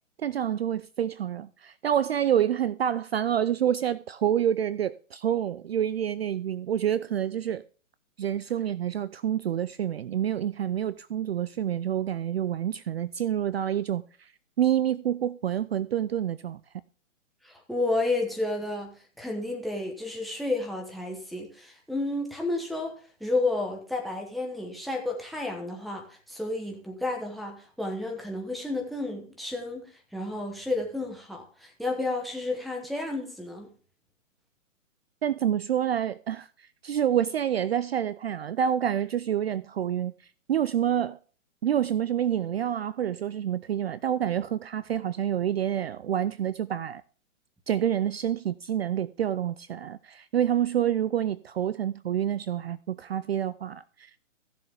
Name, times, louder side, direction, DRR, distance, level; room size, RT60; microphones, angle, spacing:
voice 1, 0.2-7.6 8.2-14.3 14.6-16.6 35.2-40.1 40.5-41.2 41.6-47.0 47.7-54.3, right 10 dB, 50° right, 0.4 m, -28 dB
voice 2, 17.4-33.7, left 2 dB, ahead, 1.0 m, -31 dB
15.5 x 7.0 x 3.4 m
hypercardioid pair, 145°, 39 cm